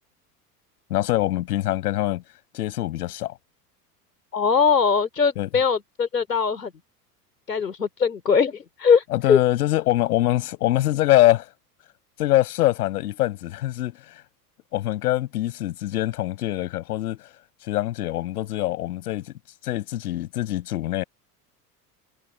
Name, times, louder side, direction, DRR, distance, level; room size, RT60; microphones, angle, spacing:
voice 1, 0.9-2.2 2.5-3.3 5.4-5.5 9.1-11.5 12.2-14.2 14.7-17.3 17.6-19.3 19.6-21.0, left 15 dB, 70° left, 7.5 m, -24 dB
voice 2, 4.3-6.7 7.5-9.4, left 6 dB, 85° left, 3.7 m, -21 dB
figure-of-eight pair, 70°, 47 cm